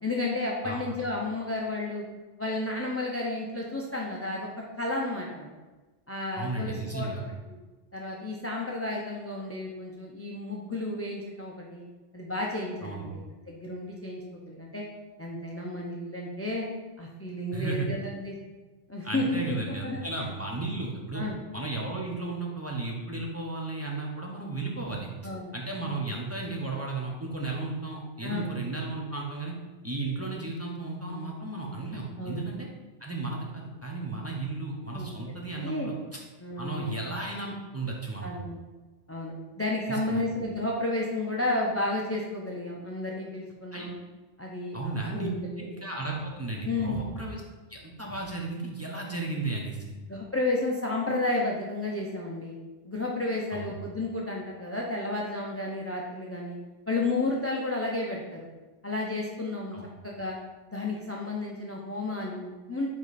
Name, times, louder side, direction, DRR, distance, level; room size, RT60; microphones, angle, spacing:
voice 1, 0.0-2.1 2.4-4.5 4.8-5.5 6.1-7.1 7.5-7.6 7.9-11.8 12.1-14.8 15.2-16.7 17.0-18.4 18.9-20.0 21.1-21.4 25.2-25.5 28.2-28.5 32.2-32.5 34.9-35.9 36.4-37.2 38.2-38.6 39.1-43.9 44.4-45.7 46.6-47.0 50.1-52.6 52.8-56.6 56.9-58.5 58.8-59.8 60.0-60.4 60.7-62.9, left 2 dB, 20° left, -2 dB, 0.4 m, -32 dB
voice 2, 6.4-7.2 12.8-13.1 17.5-17.9 19.0-21.2 21.5-25.1 25.5-29.5 29.8-32.7 33.0-36.2 36.6-38.3 39.9-40.2 43.7-43.9 44.7-45.3 45.6-47.4 47.7-49.9 53.5-53.7 59.7-59.9, right 3 dB, 15° right, -3 dB, 0.7 m, -34 dB
5.2 x 4.6 x 4.1 m, 1.2 s
omnidirectional pair, 1.3 m